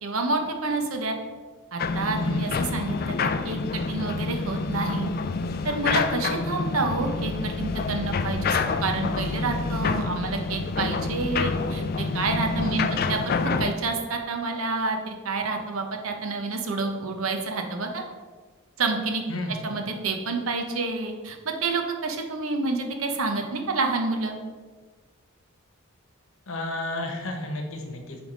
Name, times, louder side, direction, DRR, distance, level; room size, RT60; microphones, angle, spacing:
voice 1, 0.0-1.2 1.7-5.1 5.6-18.0 18.8-19.2 19.6-24.4, right 3 dB, 70° right, 3 dB, 0.9 m, -28 dB
sound 1, 1.8-13.7, left 4 dB, 45° left, 0.3 m, -27 dB
voice 2, 12.7-13.0 19.3-19.6 26.5-28.2, left 1 dB, 65° left, 3 dB, 1.0 m, -32 dB
7.5 x 3.5 x 5.1 m, 1.4 s
head